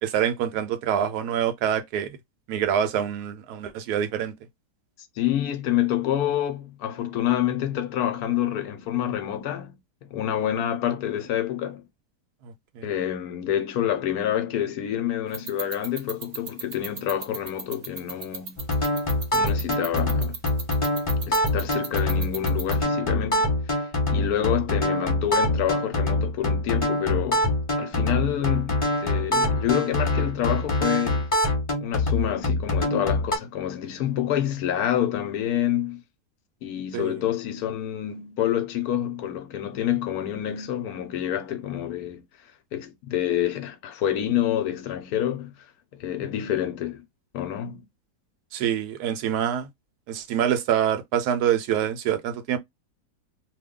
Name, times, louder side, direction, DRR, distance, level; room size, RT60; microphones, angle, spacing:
voice 1, 0.0-2.2 2.5-4.3 12.8-12.9 36.9-37.2 48.5-49.7 50.1-52.6, right 9 dB, 75° right, 1.1 m, -25 dB
voice 2, 5.2-9.7 10.0-11.9 12.8-18.6 19.3-20.4 21.2-27.5 27.8-31.2 31.8-36.0 36.6-42.2 42.7-45.7 45.9-47.0 47.3-47.8, left 11 dB, 70° left, 1.0 m, -27 dB
sound 1, 15.3-22.8, right 5 dB, 55° right, 0.9 m, -33 dB
sound 2, 18.6-33.4, left 1 dB, 20° left, 1.2 m, -24 dB
2.8 x 2.2 x 3.6 m
omnidirectional pair, 1.8 m